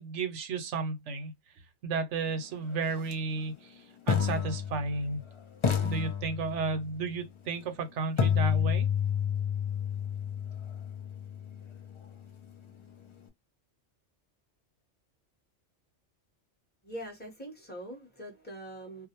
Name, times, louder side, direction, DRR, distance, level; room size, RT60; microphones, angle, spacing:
voice 1, 0.0-1.3 1.8-5.2 5.8-8.9, right 4 dB, 85° right, 1.0 m, -33 dB
sound 1, 3.0-3.1 4.1-5.2 5.6-6.9 8.2-12.1, left 7 dB, 45° left, 0.4 m, -30 dB
voice 2, 16.8-19.1, right 1 dB, 10° left, 0.9 m, -43 dB
2.5 x 2.2 x 2.8 m
omnidirectional pair, 1.2 m